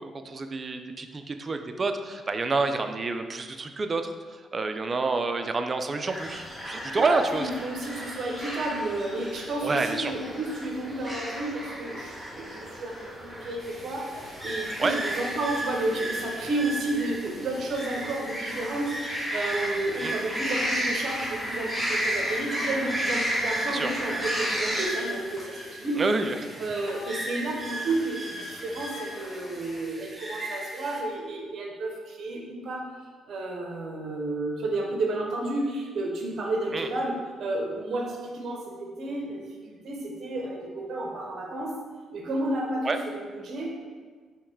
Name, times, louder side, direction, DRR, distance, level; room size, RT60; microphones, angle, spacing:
voice 1, 0.0-4.0 4.5-7.4 9.6-10.1 14.8-14.9 20.0-20.1 23.7-23.9 26.0-26.4 36.7-36.9 42.8-43.0, right 3 dB, 35° right, 7 dB, 0.4 m, -28 dB
sound 1, 6.1-24.9, equal, ahead, 1.1 m, -34 dB
voice 2, 6.9-26.0 26.6-32.9 33.3-41.7 42.1-43.7, right 2 dB, 60° right, 1 dB, 0.9 m, -31 dB
sound 2, 13.6-31.0, right 1 dB, 15° right, 0.8 m, -38 dB
sound 3, 14.0-29.9, left 3 dB, 60° left, 0.6 m, -49 dB
3.6 x 3.0 x 4.5 m, 1.5 s
cardioid pair, 90°, 0 cm